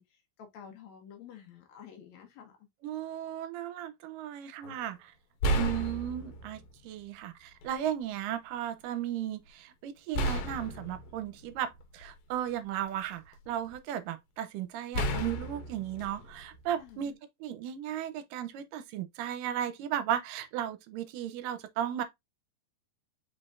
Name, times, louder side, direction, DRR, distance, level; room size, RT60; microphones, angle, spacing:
voice 1, 0.0-2.7 16.8-17.2, left 8 dB, 65° left, 2.1 m, -50 dB
voice 2, 2.8-5.1 5.5-17.1 17.4-22.0, right 10 dB, 80° right, 2.2 m, -35 dB
sound 1, 4.6-4.8 5.4-6.7 7.6-7.7 10.1-12.3 12.9-13.7 14.9-17.0, right 1 dB, 90° left, 2.5 m, -33 dB
5.4 x 3.8 x 2.5 m
omnidirectional pair, 4.0 m